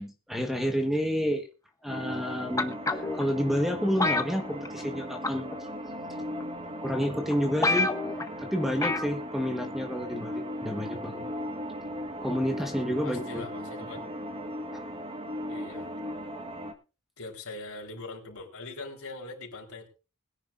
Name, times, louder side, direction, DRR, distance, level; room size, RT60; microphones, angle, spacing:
voice 1, 0.0-1.5 1.8-5.5 6.8-7.9 8.4-11.3 12.2-13.4 14.7-14.8, equal, ahead, 4 dB, 1.3 m, -30 dB
sound 1, 1.9-16.7, equal, 25° right, 1.4 m, -37 dB
sound 2, 2.6-3.2 4.0-5.0 5.2-5.5 6.4-6.5 7.0-7.1 7.3-7.4 7.6-8.3 8.8-9.1 9.4-9.5, left 3 dB, 15° left, 0.9 m, -27 dB
voice 2, 13.0-14.1 15.5-15.9 17.2-19.9, left 3 dB, 65° left, 1 dB, 4.2 m, -41 dB
21.0 x 10.5 x 2.6 m, 0.32 s
head